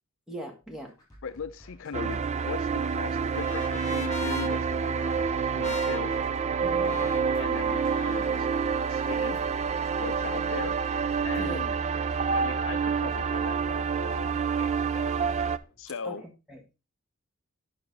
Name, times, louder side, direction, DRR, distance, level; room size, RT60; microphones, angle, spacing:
voice 1, 0.3-0.9 6.6-7.0 11.4-11.6 16.0-16.6, right 1 dB, ahead, 0 dB, 1.7 m, -40 dB
sound 1, 0.6-16.0, equal, 20° left, 4.0 m, -53 dB
voice 2, 1.2-6.3 6.8-7.1 7.4-8.5 8.9-9.4 10.0-10.8 11.2-11.7 12.3-15.1 15.8-16.2, left 5 dB, 65° left, 12 dB, 0.5 m, -39 dB
sound 2, 1.9-15.6, right 6 dB, 30° right, 0.4 m, -28 dB
Trumpet, 2.2-8.5, left 6 dB, 35° left, 0.8 m, -43 dB
8.9 x 5.9 x 4.0 m, 0.29 s
head